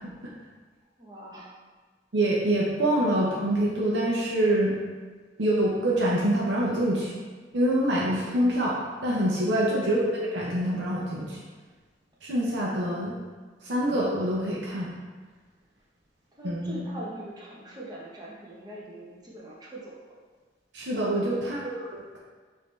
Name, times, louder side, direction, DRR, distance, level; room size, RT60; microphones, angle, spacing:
voice 1, 1.0-1.5 16.4-19.9 21.2-21.4, right 1 dB, 20° right, -6 dB, 0.9 m, -42 dB
voice 2, 2.1-4.8 5.4-7.1 7.5-11.4 12.2-13.2 13.6-14.9 16.4-16.9 20.7-22.2, right 1 dB, 85° right, -5 dB, 0.7 m, -25 dB
5.2 x 2.7 x 3.2 m, 1.4 s
head